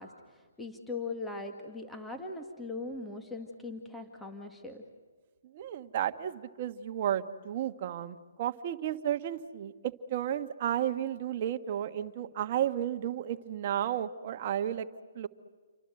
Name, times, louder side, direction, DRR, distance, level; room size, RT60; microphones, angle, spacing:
voice 1, 0.0-4.8, left 3 dB, 5° left, 3 dB, 2.1 m, -40 dB
voice 2, 5.4-14.9 15.1-15.3, right 10 dB, 40° right, 8 dB, 1.4 m, -33 dB
29.5 x 25.0 x 7.8 m, 1.5 s
hypercardioid pair, 145°, 0 cm